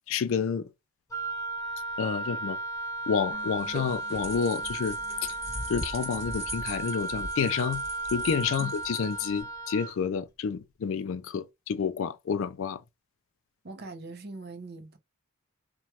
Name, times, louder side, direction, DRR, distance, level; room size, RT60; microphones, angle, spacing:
voice 1, 0.1-0.7 2.0-2.6 3.1-5.4 5.7-7.8 8.1-12.8, left 6 dB, 60° left, 0.3 m, -29 dB
Wind instrument woodwind instrument, 1.1-10.0, right 2 dB, 15° left, 0.6 m, -35 dB
sound 1, 3.3-6.6 6.9-7.0, left 3 dB, 10° right, 1.3 m, -53 dB
sound 2, 3.4-9.4, right 1 dB, 25° right, 1.0 m, -40 dB
voice 2, 13.6-15.0, right 2 dB, 45° right, 0.6 m, -41 dB
3.0 x 2.2 x 2.8 m
head